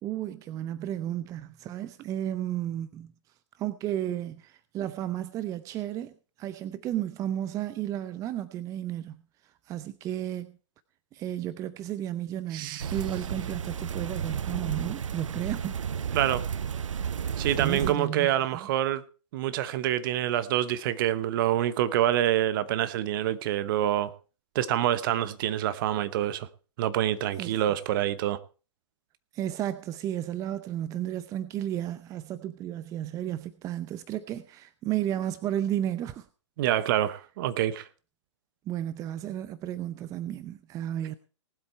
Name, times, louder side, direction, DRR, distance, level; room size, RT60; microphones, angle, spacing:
voice 1, 0.0-3.1 3.6-10.6 11.1-15.8 16.9-17.3 17.6-18.7 27.4-27.5 29.3-36.3 38.7-41.1, right 11 dB, 20° right, 0.6 m, -33 dB
voice 2, 12.5-12.9 16.1-16.4 17.4-19.0 19.3-24.1 24.5-26.5 26.8-28.4 36.6-37.9, right 12 dB, 45° right, 1.1 m, -26 dB
sound 1, 12.8-17.9, right 7 dB, 80° right, 0.5 m, -32 dB
19.0 x 8.1 x 4.5 m
hypercardioid pair, 125°, 16 cm